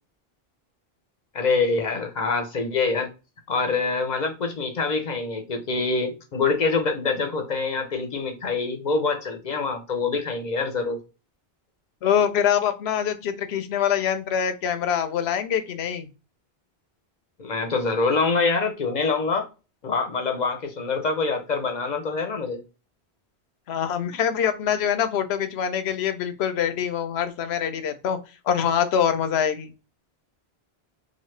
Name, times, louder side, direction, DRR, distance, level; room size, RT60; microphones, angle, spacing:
voice 1, 1.3-3.1 3.5-11.0 17.4-19.5 19.8-22.6, left 4 dB, 50° left, 0.7 m, -25 dB
voice 2, 12.0-16.1 23.7-28.2 28.5-29.7, left 8 dB, 85° left, 0.9 m, -24 dB
3.0 x 2.1 x 3.1 m
omnidirectional pair, 1.1 m